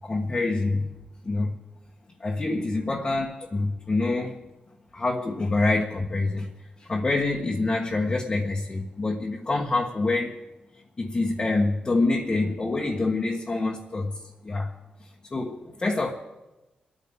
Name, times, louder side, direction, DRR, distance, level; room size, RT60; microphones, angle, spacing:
voice 1, 0.0-0.9 1.2-1.5 2.2-4.4 4.9-6.5 6.8-10.4 11.0-14.7 15.0-16.1, left 2 dB, 30° left, 1.5 m, -26 dB
27.0 x 9.6 x 3.7 m
wide cardioid pair, 115°, 3 cm